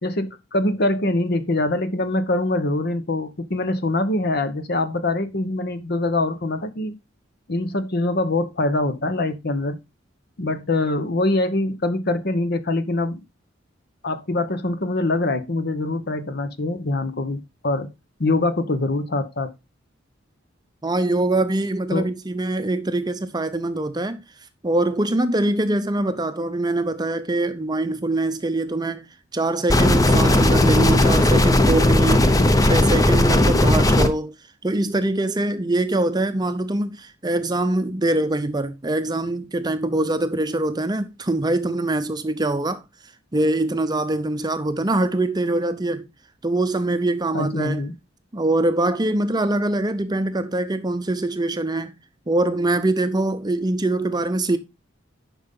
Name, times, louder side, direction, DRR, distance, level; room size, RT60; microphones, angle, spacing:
voice 1, 0.0-6.9 7.5-9.8 10.4-13.2 14.0-17.9 18.2-19.5 21.9-22.1 47.3-47.9, left 2 dB, 55° left, 1.1 m, -24 dB
voice 2, 20.8-24.2 24.6-29.1 29.3-34.3 34.6-42.8 43.3-46.1 46.4-47.8 48.3-52.0 52.3-54.6, right 2 dB, 20° right, 0.7 m, -23 dB
sound 1, 29.7-34.1, left 1 dB, 20° left, 0.8 m, -16 dB
10.5 x 5.5 x 3.7 m
head